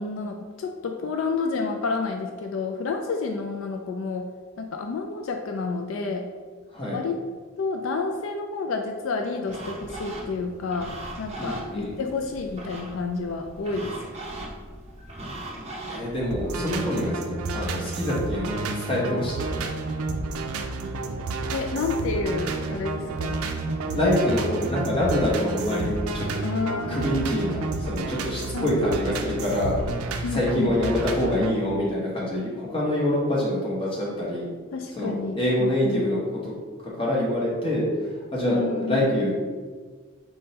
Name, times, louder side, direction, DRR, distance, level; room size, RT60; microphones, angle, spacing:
voice 1, 0.0-4.3 4.6-6.3 6.9-7.3 7.6-14.1 21.5-23.4 26.4-27.2 28.5-28.8 30.2-30.8 34.7-36.1 38.4-39.1, left 4 dB, 65° left, 3 dB, 0.3 m, -30 dB
sound 1, 9.5-16.9, right 1 dB, 30° right, 0.6 m, -39 dB
voice 2, 11.4-12.0 15.9-17.2 17.5-19.6 23.8-26.2 26.9-29.8 30.3-34.4 34.9-36.5 37.0-39.3, left 1 dB, 25° left, -5 dB, 1.0 m, -26 dB
sound 2, 16.3-31.5, right 3 dB, 85° right, 0.4 m, -30 dB
4.2 x 3.6 x 2.8 m, 1.5 s
head